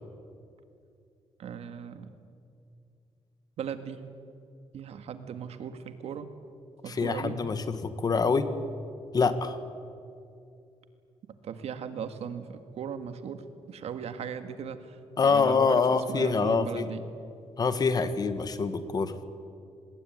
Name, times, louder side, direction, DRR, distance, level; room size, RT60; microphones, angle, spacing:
voice 1, 1.4-2.1 3.6-4.0 4.7-6.3 6.8-7.4 11.4-13.4 13.7-17.0, right 7 dB, 80° right, 9 dB, 1.8 m, -38 dB
voice 2, 6.9-8.5 9.1-9.6 15.2-16.9 17.6-19.1, left 4 dB, 35° left, 11 dB, 1.6 m, -25 dB
25.0 x 20.5 x 9.4 m, 2.5 s
wide cardioid pair, 145°, 11 cm